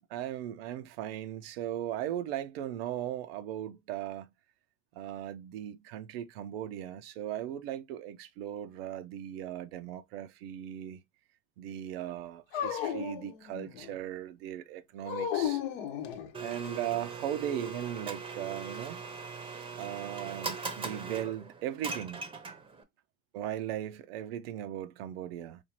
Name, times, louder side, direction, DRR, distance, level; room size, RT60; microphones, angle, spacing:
voice 1, 0.1-4.3 4.9-11.0 11.6-15.6 16.4-19.0 19.8-22.2 23.3-25.6, right 11 dB, 90° right, 0.5 m, -38 dB
Dog, 12.5-13.9 15.0-16.7, left 9 dB, 80° left, 0.8 m, -34 dB
Domestic sounds home sounds, 16.3-22.8, right 4 dB, 20° right, 0.6 m, -40 dB
4.3 x 2.4 x 2.9 m
supercardioid pair, 110°, 29 cm